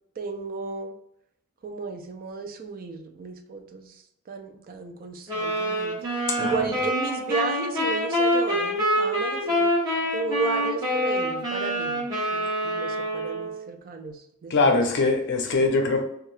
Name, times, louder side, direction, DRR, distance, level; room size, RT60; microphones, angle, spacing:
voice 1, 0.2-0.9 1.6-4.0 4.3-6.0 6.4-9.7 10.1-12.1 12.3-14.8, right 3 dB, 45° right, 6 dB, 0.4 m, -33 dB
sound 1, 5.3-13.6, equal, 20° right, 1.1 m, -26 dB
voice 2, 14.5-16.0, left 3 dB, 60° left, 4 dB, 0.5 m, -22 dB
2.7 x 2.2 x 3.1 m, 0.75 s
head